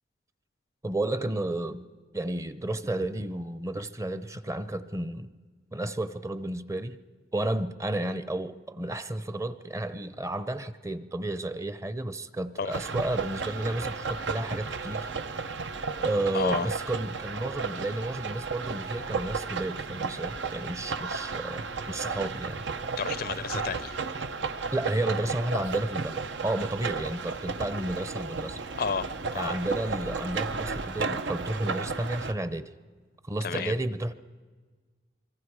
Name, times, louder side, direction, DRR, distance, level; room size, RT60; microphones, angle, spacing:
voice 1, 0.8-1.9 2.1-5.3 5.7-7.0 7.3-15.1 16.0-22.6 24.7-28.6 29.3-32.7 33.3-34.1, right 1 dB, 15° right, 0.7 m, -32 dB
sound 1, 12.7-32.3, right 4 dB, 80° right, 0.9 m, -34 dB
voice 2, 16.3-16.7 23.0-24.0 28.8-29.6 33.4-33.8, left 5 dB, 55° left, 0.5 m, -31 dB
25.5 x 23.5 x 4.8 m
head